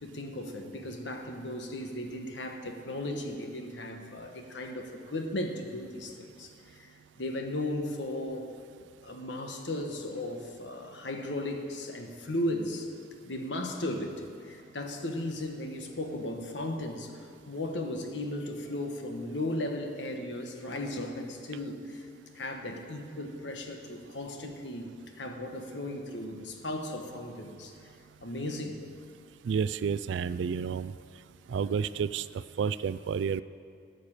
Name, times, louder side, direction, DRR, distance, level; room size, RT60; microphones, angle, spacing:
voice 1, 0.0-8.5 9.0-12.9 13.2-22.1 22.3-24.9 25.2-27.7 28.2-28.8, left 1 dB, 80° left, 4 dB, 1.3 m, -36 dB
voice 2, 29.4-30.9 31.5-33.4, right 6 dB, 75° right, 15 dB, 0.3 m, -30 dB
13.0 x 6.6 x 8.9 m, 2.3 s
head